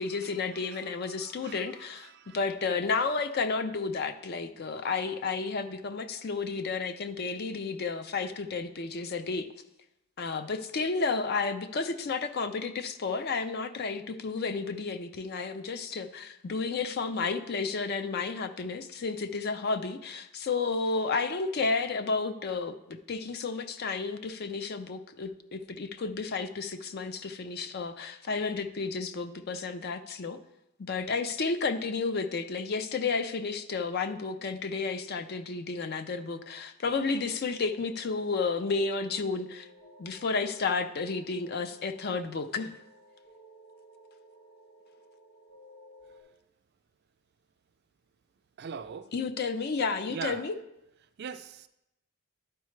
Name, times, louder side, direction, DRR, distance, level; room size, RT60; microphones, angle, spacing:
voice 1, 0.0-9.5 10.2-22.7 23.1-30.4 30.8-39.7 40.0-42.8 49.1-50.5, left 4 dB, 50° left, 10 dB, 0.5 m, -32 dB
voice 2, 0.7-2.4 48.6-49.1 50.1-50.4 51.2-51.7, right 6 dB, 50° right, 11 dB, 0.4 m, -41 dB
sound 1, 36.9-46.2, equal, 70° left, 2.8 m, -56 dB
11.5 x 4.6 x 3.2 m, 0.87 s
head